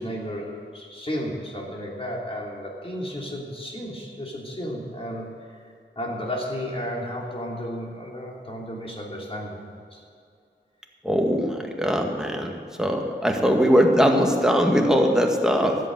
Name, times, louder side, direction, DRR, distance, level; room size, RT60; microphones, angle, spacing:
voice 1, 0.0-5.3 5.5-5.6 5.9-9.6 9.9-10.0 12.8-12.9, equal, 30° left, -3 dB, 3.4 m, -33 dB
voice 2, 11.0-12.5 12.8-15.8, equal, 5° right, 1 dB, 1.9 m, -21 dB
13.0 x 8.6 x 8.0 m, 2.3 s
wide cardioid pair, 55°, 19 cm